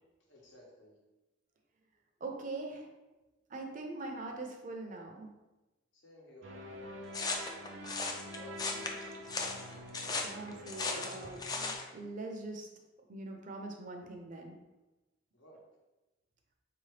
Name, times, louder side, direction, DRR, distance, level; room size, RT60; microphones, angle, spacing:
voice 1, 0.3-1.0 5.9-6.9 8.0-9.0 15.3-15.6, left 1 dB, 80° left, -3 dB, 1.2 m, -56 dB
voice 2, 2.2-2.9 3.5-5.3 10.2-11.4 11.9-12.7 13.1-14.6, right 2 dB, 45° right, 2 dB, 0.5 m, -42 dB
sound 1, 6.4-11.8, equal, 90° right, 0.6 m, -47 dB
sound 2, 7.1-11.9, left 3 dB, 20° left, 0.4 m, -37 dB
4.3 x 2.8 x 3.2 m, 1.1 s
head